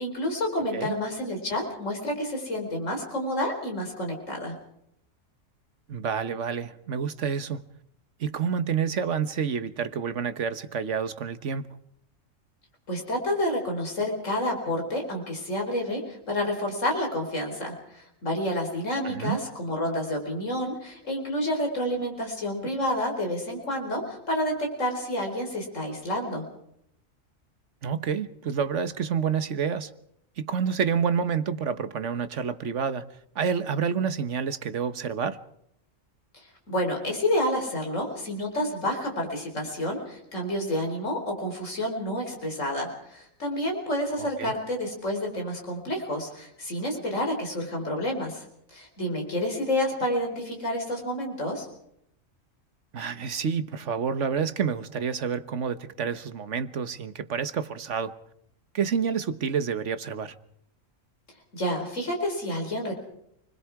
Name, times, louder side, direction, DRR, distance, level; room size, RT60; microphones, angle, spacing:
voice 1, 0.0-4.6 12.9-26.4 36.3-51.7 61.5-62.9, left 1 dB, 70° left, 4.7 m, -29 dB
voice 2, 5.9-7.6 8.2-11.7 19.0-19.4 27.8-29.9 30.4-33.1 33.3-35.4 44.2-44.5 52.9-58.1 58.7-60.3, right 6 dB, 65° right, 1.5 m, -28 dB
28.5 x 21.0 x 4.8 m
omnidirectional pair, 1.3 m